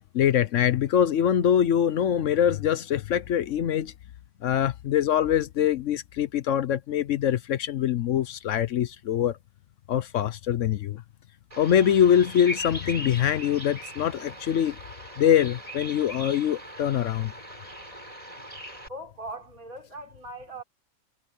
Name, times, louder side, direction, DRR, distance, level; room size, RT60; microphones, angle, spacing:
voice 1, 0.1-3.9 4.4-9.4 9.9-11.0 11.6-14.8 15.2-17.3, left 9 dB, 65° left, 1.0 m, -24 dB
Bird vocalization bird call bird song, 11.5-18.9, equal, 25° right, 6.3 m, -40 dB
voice 2, 18.9-20.6, right 1 dB, 85° right, 4.9 m, -40 dB
omnidirectional pair, 1.5 m